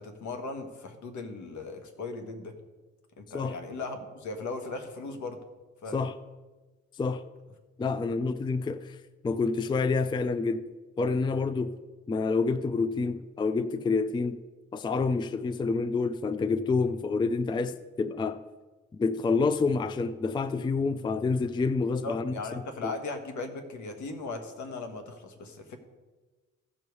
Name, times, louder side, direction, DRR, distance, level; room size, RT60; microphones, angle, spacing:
voice 1, 0.0-2.6 3.2-5.4 5.8-6.0 7.9-8.0 22.0-25.8, left 3 dB, 70° left, 1.5 m, -38 dB
voice 2, 7.8-9.0 9.2-10.7 11.0-11.8 12.1-14.4 14.7-18.4 18.9-22.3 22.8-22.9, left 4 dB, 15° left, 0.4 m, -28 dB
15.0 x 5.3 x 4.7 m
cardioid pair, 90°, 30 cm